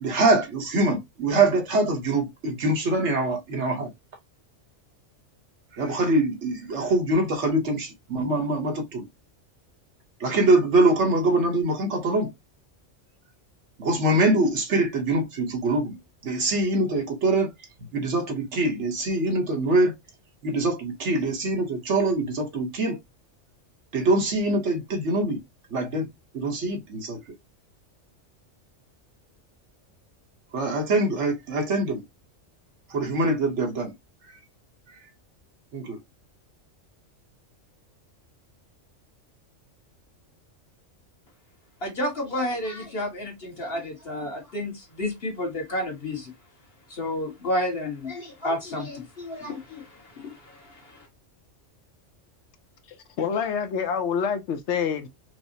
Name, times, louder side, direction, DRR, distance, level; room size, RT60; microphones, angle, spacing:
voice 1, 0.0-3.9 5.8-9.1 10.2-12.3 13.8-16.0 16.2-17.5 17.9-19.9 20.4-23.0 23.9-25.4 25.7-26.1 26.3-27.2 30.5-32.0 32.9-33.9 35.7-36.0, right 2 dB, 70° right, 1.3 m, -24 dB
voice 2, 41.8-46.3 46.9-51.0, left 1 dB, 55° left, 1.4 m, -31 dB
voice 3, 52.9-55.1, left 7 dB, 70° left, 0.9 m, -27 dB
4.6 x 2.0 x 2.6 m
omnidirectional pair, 1.3 m